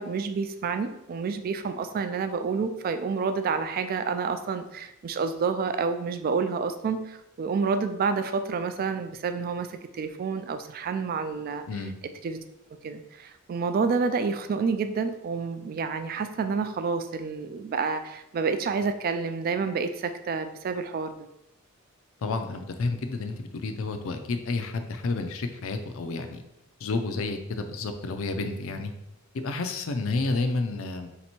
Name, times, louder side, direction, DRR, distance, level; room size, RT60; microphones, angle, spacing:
voice 1, 0.0-9.7 9.9-11.6 12.2-12.4 12.8-21.1, right 5 dB, 45° right, 9 dB, 0.3 m, -29 dB
voice 2, 22.2-26.4 26.8-28.9 29.4-31.1, left 3 dB, 70° left, 7 dB, 0.5 m, -30 dB
3.3 x 2.9 x 4.3 m, 0.86 s
head